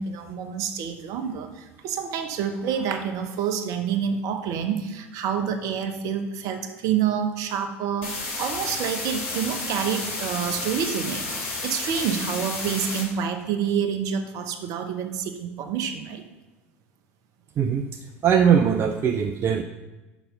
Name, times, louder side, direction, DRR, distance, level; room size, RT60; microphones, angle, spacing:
voice 1, 0.0-16.2, right 7 dB, 50° right, 7 dB, 0.9 m, -28 dB
sound 1, 8.0-13.0, left 3 dB, 65° left, 3.1 m, -31 dB
voice 2, 18.2-19.6, right 8 dB, 35° right, 6 dB, 0.5 m, -20 dB
6.0 x 5.7 x 6.8 m, 1.1 s
figure-of-eight pair, 70°, 7 cm